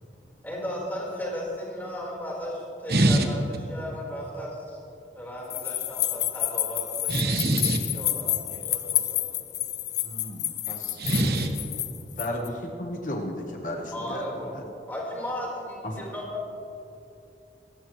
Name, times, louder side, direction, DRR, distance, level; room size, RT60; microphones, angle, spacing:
voice 1, 0.4-3.4 3.7-4.8 5.1-7.2 7.9-9.2 13.9-16.4, left 1 dB, 10° left, -5 dB, 4.3 m, -35 dB
voice 2, 2.9-3.3 7.1-7.8 10.6-11.5, right 1 dB, 60° right, 3 dB, 1.3 m, -23 dB
sound 1, 5.5-12.5, left 13 dB, 70° left, 0.8 m, -29 dB
voice 3, 10.0-11.0 12.2-14.3 14.5-14.6 15.8-16.0, left 1 dB, 45° left, 1 dB, 1.2 m, -34 dB
26.0 x 14.0 x 3.2 m, 2.8 s
head